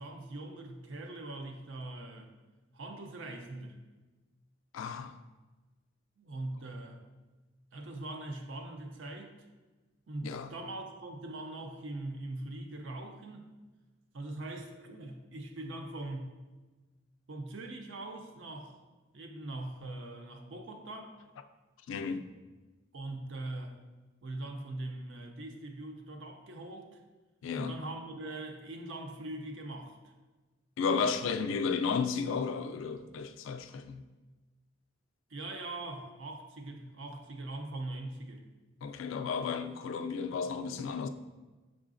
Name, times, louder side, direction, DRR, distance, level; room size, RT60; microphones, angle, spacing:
voice 1, 0.0-2.3 2.7-3.8 6.2-7.0 7.7-9.3 10.1-13.6 14.1-16.3 17.3-18.8 19.1-21.1 22.9-23.8 24.2-27.0 27.6-30.1 35.3-38.4, right 2 dB, 75° right, 0.6 m, -42 dB
voice 2, 4.7-5.1 10.2-10.5 21.9-22.2 27.4-27.7 30.8-34.0 38.8-41.1, left 5 dB, 80° left, 0.3 m, -33 dB
5.5 x 3.7 x 2.5 m
head